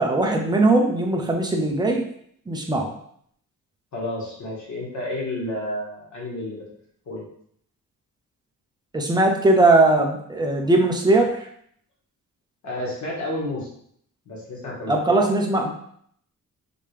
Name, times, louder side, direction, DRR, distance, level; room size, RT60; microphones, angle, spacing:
voice 1, 0.0-2.0 2.5-2.9 8.9-11.4 14.9-15.7, right 2 dB, 10° right, 2 dB, 0.5 m, -19 dB
voice 2, 3.9-6.6 7.0-7.2 10.6-10.7 12.6-13.7 14.2-15.1, left 1 dB, 55° left, -4 dB, 1.6 m, -31 dB
5.2 x 2.9 x 3.3 m, 0.65 s
wide cardioid pair, 180°, 34 cm